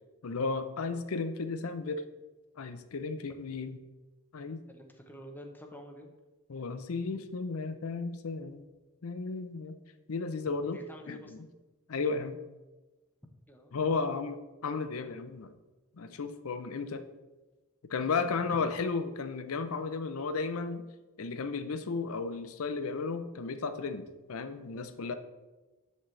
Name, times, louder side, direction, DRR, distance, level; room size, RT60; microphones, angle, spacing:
voice 1, 0.2-2.0 2.6-3.8 4.3-4.6 6.5-8.6 9.0-9.8 10.1-10.8 11.1-11.4 11.9-12.4 13.7-15.5 15.9-17.0 17.9-20.8 21.2-25.1, left 4 dB, 70° left, 10 dB, 0.5 m, -34 dB
voice 2, 4.7-6.1 10.6-11.3 13.5-13.7 18.5-18.6, equal, 10° left, 4 dB, 0.7 m, -48 dB
12.0 x 4.1 x 3.2 m, 1.1 s
head